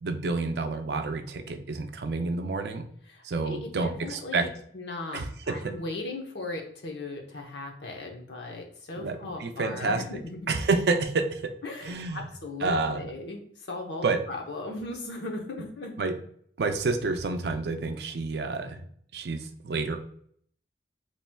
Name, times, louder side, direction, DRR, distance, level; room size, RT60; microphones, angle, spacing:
voice 1, 0.0-2.9 3.2-4.5 5.1-5.7 9.0-10.0 10.5-11.6 11.8-12.2 12.6-13.1 14.0-14.2 16.0-16.2 16.6-18.8 19.1-20.0, right 3 dB, 65° right, 8 dB, 0.4 m, -29 dB
voice 2, 3.1-4.5 4.7-5.2 5.5-10.6 11.6-15.9, left 2 dB, 80° left, 2 dB, 0.8 m, -37 dB
4.4 x 3.0 x 2.2 m, 0.62 s
head